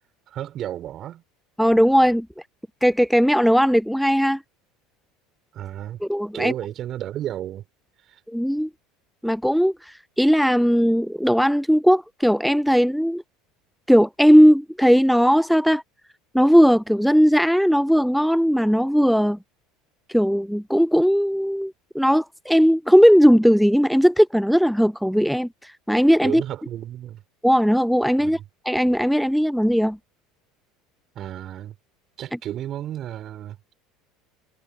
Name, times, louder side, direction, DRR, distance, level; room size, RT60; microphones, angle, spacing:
voice 1, 0.3-1.2 5.5-6.0 6.3-7.6 8.1-8.2 26.2-27.2 28.2-28.4 31.1-31.7 32.2-33.6, right 12 dB, 40° right, 4.9 m, -32 dB
voice 2, 1.6-2.3 2.8-4.4 6.1-6.5 8.3-8.7 9.2-13.2 13.9-15.8 16.3-19.4 20.1-26.4 27.4-28.4 28.7-30.0, equal, ahead, 0.5 m, -18 dB
figure-of-eight pair, 70°, 0 cm